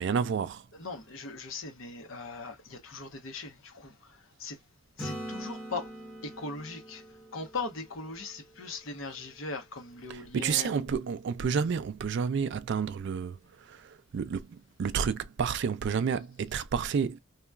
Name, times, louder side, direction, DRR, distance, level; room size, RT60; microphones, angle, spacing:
voice 1, 0.0-0.7 10.1-17.2, right 6 dB, 55° right, 0.3 m, -30 dB
voice 2, 0.7-3.9 4.4-4.6 5.0-5.8 6.2-7.0 7.3-10.9, left 3 dB, 70° left, 0.9 m, -39 dB
Acoustic guitar / Strum, 5.0-8.7 13.6-13.7, equal, 5° left, 0.9 m, -43 dB
2.9 x 2.3 x 2.2 m
head